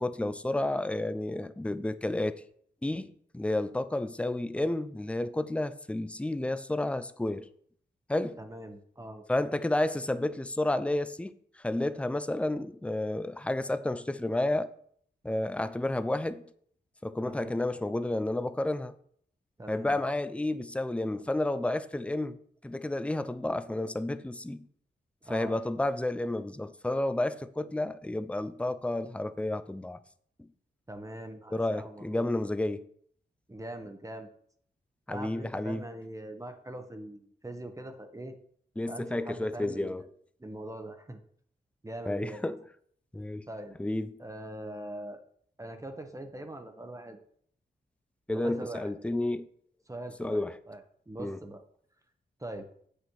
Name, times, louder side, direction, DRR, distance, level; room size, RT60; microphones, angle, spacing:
voice 1, 0.0-2.4 2.8-7.5 8.1-8.4 9.3-14.7 15.2-16.4 17.0-18.9 19.7-22.4 22.6-24.7 25.3-30.0 31.5-32.8 35.1-35.8 38.8-40.0 42.1-42.6 43.1-43.5 43.8-44.2 48.3-49.5 50.2-50.6 51.2-51.4, left 1 dB, 5° left, 0.5 m, -31 dB
voice 2, 8.4-9.2 17.2-17.6 19.6-20.0 25.3-25.6 30.9-32.3 33.5-34.3 35.1-38.3 38.9-40.0 40.4-41.2 41.8-42.4 43.5-43.8 44.2-45.2 45.6-47.2 48.3-48.9 49.9-51.6 52.4-52.7, right 1 dB, 15° right, 1.1 m, -42 dB
8.1 x 6.7 x 4.7 m
cardioid pair, 80°, 18 cm